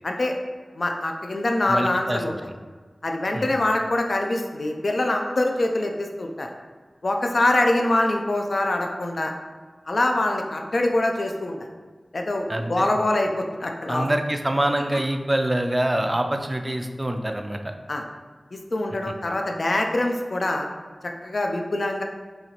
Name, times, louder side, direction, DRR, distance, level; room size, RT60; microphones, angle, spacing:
voice 1, 0.8-2.4 3.0-6.5 7.0-9.3 9.9-11.6 12.1-14.1 17.9-18.0 18.5-20.7 21.2-22.0, left 1 dB, 60° left, 3 dB, 0.4 m, -24 dB
voice 2, 1.7-2.2 3.3-3.5 12.5-12.9 13.9-17.6, right 1 dB, 25° right, 5 dB, 0.3 m, -25 dB
4.2 x 2.8 x 2.9 m, 1.5 s
wide cardioid pair, 75°, 0 cm